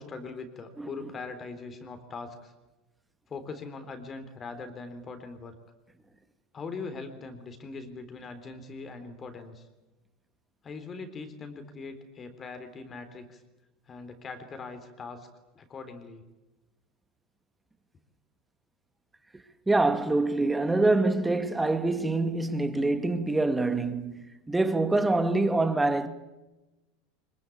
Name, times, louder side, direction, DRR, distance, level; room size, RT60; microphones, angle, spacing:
voice 1, 0.0-2.5 3.3-5.6 6.5-9.7 10.6-13.4 13.9-15.3 15.6-16.2, left 4 dB, 30° left, 3.6 m, -41 dB
voice 2, 19.7-26.1, right 2 dB, 10° right, 2.3 m, -25 dB
24.5 x 23.0 x 8.6 m
hypercardioid pair, 80°, 0 cm